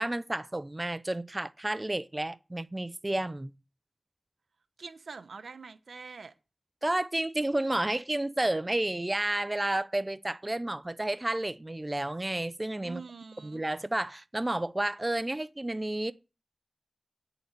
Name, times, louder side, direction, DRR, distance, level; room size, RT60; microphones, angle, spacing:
voice 1, 0.0-3.5 6.8-13.0 13.4-16.1, right 1 dB, 30° right, 0.7 m, -31 dB
voice 2, 4.8-6.3 12.8-13.6, right 4 dB, 85° right, 1.0 m, -45 dB
9.0 x 7.0 x 8.3 m
cardioid pair, 40°, 0 cm